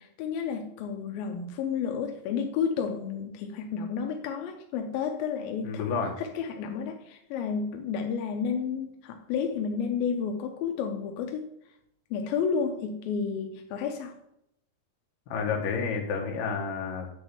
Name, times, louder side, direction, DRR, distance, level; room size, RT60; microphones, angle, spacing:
voice 1, 0.0-5.8 6.2-11.5 12.1-14.2, left 6 dB, 80° left, 4 dB, 2.1 m, -31 dB
voice 2, 5.6-6.1 15.3-17.1, left 5 dB, 65° left, 1 dB, 2.6 m, -30 dB
8.1 x 3.9 x 6.8 m, 0.78 s
omnidirectional pair, 4.8 m